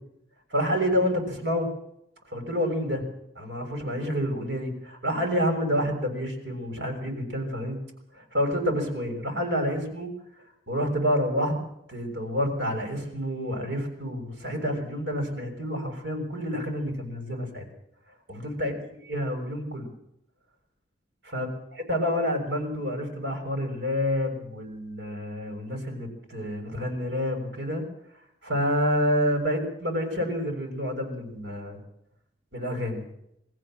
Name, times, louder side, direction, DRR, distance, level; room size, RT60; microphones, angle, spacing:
voice 1, 0.5-1.7 2.3-3.0 3.3-7.8 8.1-10.1 10.7-11.5 11.9-17.6 18.3-18.7 19.1-19.9 21.2-21.5 21.9-27.8 28.4-31.8 32.5-33.0, equal, 70° right, 4 dB, 6.8 m, -28 dB
23.0 x 15.0 x 7.7 m, 0.77 s
head